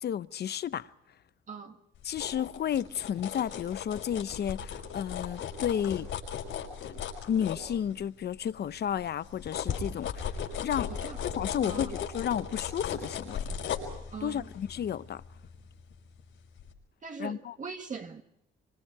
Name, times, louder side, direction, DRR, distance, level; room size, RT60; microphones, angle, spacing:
voice 1, 0.0-0.9 2.0-6.1 6.8-7.0 7.3-10.3 10.6-10.9 11.2-13.5 14.2-15.2 17.2-17.6, left 9 dB, 55° left, 0.8 m, -32 dB
voice 2, 1.5-1.8 10.9-11.2 11.6-11.9 14.1-14.5 17.0-18.2, right 5 dB, 40° right, 1.6 m, -41 dB
sound 1, 2.0-8.2 8.7-16.2 16.6-16.7, left 7 dB, 80° left, 5.7 m, -37 dB
26.5 x 26.0 x 4.8 m
cardioid pair, 90°, 20 cm